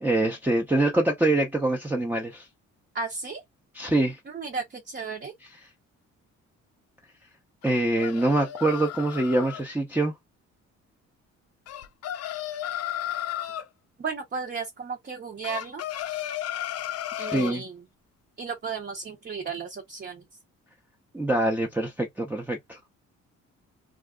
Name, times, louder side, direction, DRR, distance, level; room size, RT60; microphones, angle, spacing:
voice 1, 0.0-2.5 3.8-4.2 7.6-10.1 17.2-17.6 21.1-22.8, right 2 dB, 5° right, 0.6 m, -24 dB
voice 2, 2.9-3.4 4.2-5.3 14.0-15.8 17.2-17.9 18.4-20.3, right 5 dB, 35° right, 0.8 m, -34 dB
sound 1, 7.6-9.6 11.7-13.7 15.4-17.6, left 11 dB, 55° left, 0.5 m, -34 dB
2.4 x 2.1 x 3.6 m
cardioid pair, 90°, 30 cm